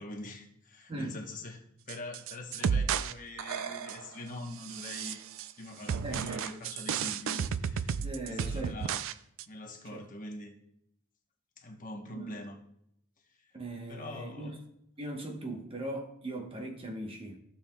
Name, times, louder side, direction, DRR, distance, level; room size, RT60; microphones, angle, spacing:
voice 1, 0.0-1.6 1.9-5.2 5.6-9.0 9.5-10.6 11.6-12.6 13.9-14.6, left 1 dB, 40° left, 1.1 m, -44 dB
voice 2, 0.9-1.2 6.0-6.5 8.0-8.8 9.9-10.0 12.1-12.4 13.5-14.6 15.0-17.4, right 1 dB, 25° right, 1.1 m, -39 dB
sound 1, 1.9-3.1 3.4-4.1 4.6-5.5 5.9-9.1 9.4-9.5, right 7 dB, 65° right, 0.4 m, -33 dB
15.0 x 7.2 x 2.3 m
head